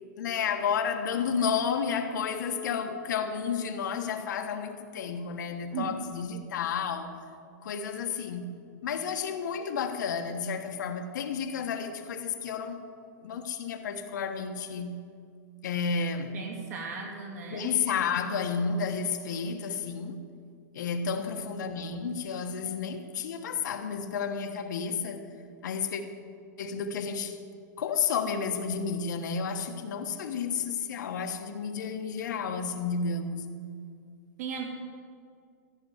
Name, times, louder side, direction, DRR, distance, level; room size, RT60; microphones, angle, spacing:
voice 1, 0.2-7.1 7.6-8.6 8.8-12.9 13.2-15.0 15.6-16.3 17.5-20.2 20.7-25.3 25.6-26.0 26.6-27.4 27.8-33.5, left 6 dB, 80° left, 1.4 m, -31 dB
voice 2, 16.3-17.7 21.1-21.2 34.4-34.6, right 6 dB, 60° right, 2.5 m, -36 dB
14.5 x 6.9 x 9.3 m
supercardioid pair, 175°, 10 cm